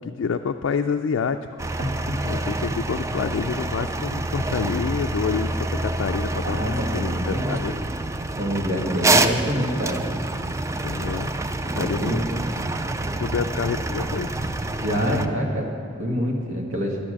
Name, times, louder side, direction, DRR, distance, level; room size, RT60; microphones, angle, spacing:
voice 1, 0.0-1.4 2.3-7.8 10.8-11.3 11.7-12.2 13.1-14.3, left 6 dB, 70° left, 5 dB, 0.4 m, -28 dB
sound 1, 1.6-15.3, right 2 dB, 15° right, 0.3 m, -27 dB
voice 2, 1.8-2.3 6.4-7.6 8.3-10.1 11.6-12.4 14.8-15.7 16.0-17.0, equal, 85° right, 0 dB, 1.8 m, -26 dB
10.5 x 8.6 x 6.5 m, 2.2 s
head